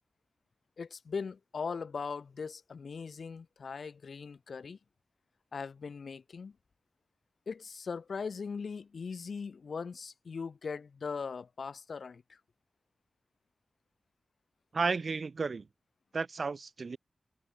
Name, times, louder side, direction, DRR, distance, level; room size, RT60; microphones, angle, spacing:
voice 1, 0.8-4.8 5.5-6.5 7.5-12.4, left 5 dB, 70° left, 0.6 m, -40 dB
voice 2, 14.7-15.7 16.1-17.0, right 4 dB, 55° right, 0.5 m, -33 dB
wide cardioid pair, 100°, 0 cm